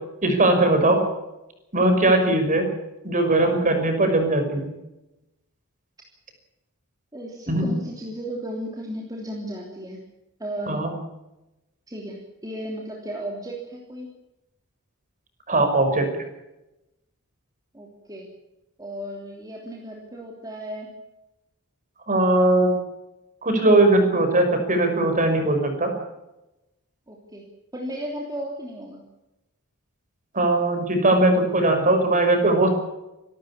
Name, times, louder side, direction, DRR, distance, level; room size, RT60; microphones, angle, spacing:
voice 1, 0.2-1.0 1.7-2.7 3.0-4.7 7.5-7.7 10.7-10.9 15.5-16.2 22.1-22.7 23.4-25.9 30.3-32.7, right 2 dB, 35° right, 5 dB, 5.6 m, -19 dB
voice 2, 7.1-10.0 10.4-10.9 11.9-14.1 17.7-18.3 18.8-20.9 27.1-27.4 27.7-29.0, right 1 dB, 15° right, -1 dB, 3.2 m, -34 dB
26.5 x 13.0 x 8.7 m, 0.95 s
head